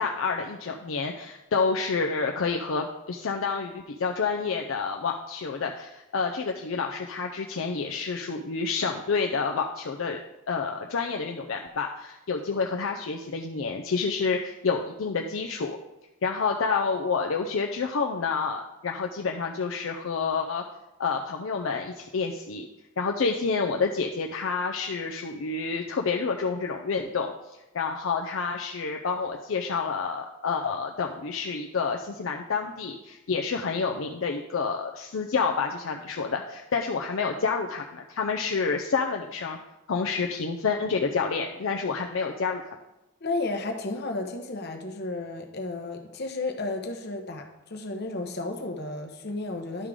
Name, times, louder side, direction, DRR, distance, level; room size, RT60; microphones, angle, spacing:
voice 1, 0.0-10.2 10.5-15.8 16.2-20.6 21.0-22.7 23.0-39.6 39.9-42.6, left 5 dB, 65° left, 2 dB, 0.5 m, -29 dB
voice 2, 43.2-49.9, left 2 dB, 50° left, 4 dB, 0.9 m, -33 dB
11.0 x 3.7 x 4.8 m, 0.95 s
head